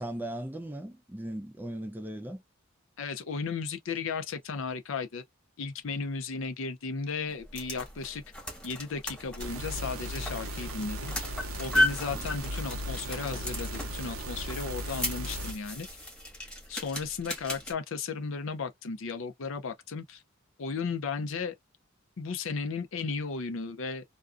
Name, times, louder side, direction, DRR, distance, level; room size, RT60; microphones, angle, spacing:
voice 1, 0.0-2.4, right 1 dB, 10° right, 0.4 m, -37 dB
voice 2, 3.0-5.2 5.6-8.2 8.6-11.3 11.6-15.9 16.7-20.2 20.6-21.5 22.2-24.0, left 5 dB, 65° left, 0.5 m, -35 dB
sound 1, 7.3-17.7, left 1 dB, 5° left, 1.1 m, -35 dB
sound 2, 9.4-15.5, equal, 80° right, 0.6 m, -37 dB
2.4 x 2.2 x 2.4 m
head